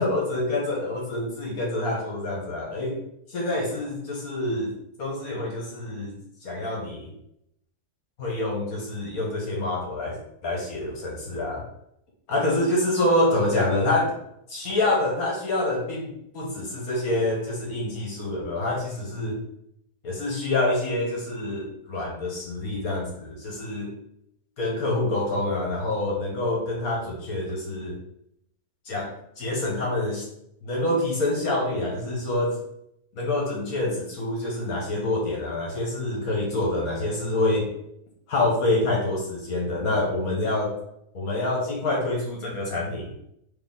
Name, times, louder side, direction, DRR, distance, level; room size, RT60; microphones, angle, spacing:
voice 1, 0.0-3.0 3.3-4.7 5.0-7.1 8.2-10.2 10.4-11.6 12.3-14.1 14.5-19.4 20.0-23.9 24.6-27.9 28.8-29.1 29.4-30.2 30.6-32.6 33.1-37.7 38.3-40.7 41.1-43.1, left 2 dB, 65° left, -2 dB, 1.5 m, -26 dB
4.1 x 3.3 x 3.7 m, 0.77 s
omnidirectional pair, 1.6 m